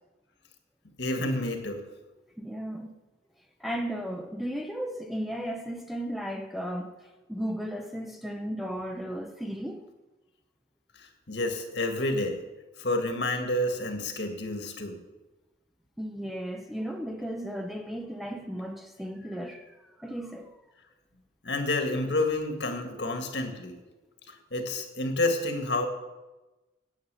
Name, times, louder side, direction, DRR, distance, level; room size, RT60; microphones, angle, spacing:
voice 1, 1.0-1.8 11.0-12.4 12.8-15.0 21.4-23.8 24.3-25.9, left 2 dB, 65° left, 1.8 m, -29 dB
voice 2, 2.4-3.0 3.6-9.9 16.0-20.6, equal, ahead, 0.7 m, -35 dB
9.6 x 8.6 x 8.2 m
head